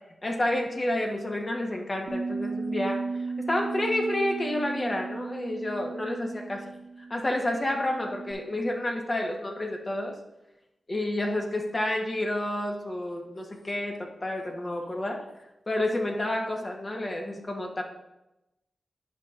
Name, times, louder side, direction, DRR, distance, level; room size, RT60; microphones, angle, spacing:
voice 1, 0.2-3.0 3.4-6.7 7.1-10.2 10.9-15.2 15.7-17.8, left 1 dB, 40° left, 1 dB, 1.5 m, -29 dB
Bass guitar, 2.1-8.3, right 4 dB, 65° right, 1.0 m, -35 dB
10.5 x 5.7 x 2.6 m, 0.91 s
cardioid pair, 45°, 0 cm